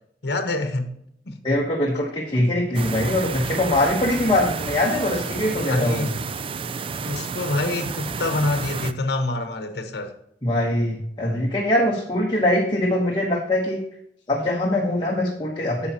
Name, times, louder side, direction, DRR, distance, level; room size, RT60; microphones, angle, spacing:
voice 1, 0.2-1.0 1.2-1.4 5.5-6.2 7.0-10.1, left 2 dB, 65° left, 1.0 m, -26 dB
voice 2, 1.4-6.1 10.4-13.8 14.3-15.9, left 1 dB, 25° left, 1.1 m, -22 dB
sound 1, 2.7-8.9, right 5 dB, 30° right, 0.3 m, -30 dB
9.6 x 6.9 x 2.9 m
head